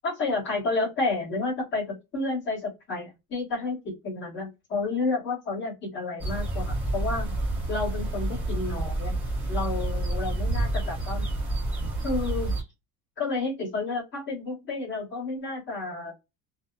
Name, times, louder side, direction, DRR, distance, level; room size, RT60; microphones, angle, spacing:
voice 1, 0.0-7.4 7.7-9.2 9.5-11.3 12.0-12.5 13.2-16.1, left 3 dB, 30° left, -3 dB, 1.4 m, -30 dB
sound 1, 6.2-12.6, right 2 dB, 5° right, 0.8 m, -29 dB
2.8 x 2.1 x 2.3 m, 0.23 s
cardioid pair, 175°, 38 cm